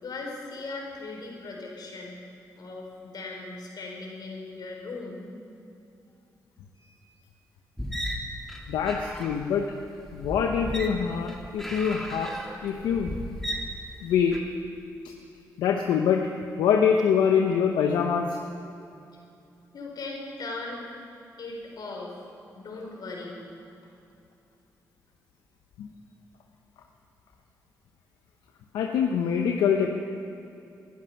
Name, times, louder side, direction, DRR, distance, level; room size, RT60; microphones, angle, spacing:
voice 1, 0.0-2.2 2.6-5.2 19.7-20.8 21.4-22.2 22.5-23.4, left 3 dB, 65° left, -1 dB, 4.2 m, -38 dB
sound 1, 7.8-14.4, equal, 5° left, 2.6 m, -35 dB
voice 2, 8.7-9.7 10.1-12.3 12.6-13.2 14.0-14.4 15.6-16.2 16.6-18.4 25.8-25.9 28.7-29.9, left 7 dB, 90° left, 3 dB, 0.8 m, -24 dB
20.0 x 11.5 x 5.8 m, 2.7 s
supercardioid pair, 55°, 7 cm